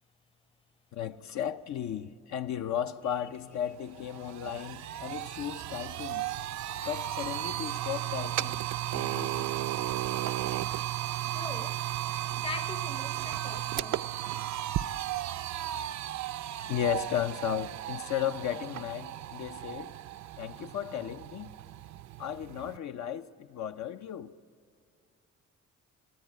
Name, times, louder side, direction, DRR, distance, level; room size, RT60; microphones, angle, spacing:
voice 1, 0.9-6.3 6.9-8.6 8.9-9.5 16.7-19.9 20.4-21.5 22.2-24.3, left 10 dB, 65° left, 0.7 m, -35 dB
sound 1, 3.3-3.4 3.8-22.8, right 13 dB, 70° right, 0.5 m, -35 dB
voice 2, 11.2-11.9 12.4-14.0, left 4 dB, 15° left, 0.7 m, -42 dB
27.5 x 16.5 x 9.0 m
cardioid pair, 90°, 30 cm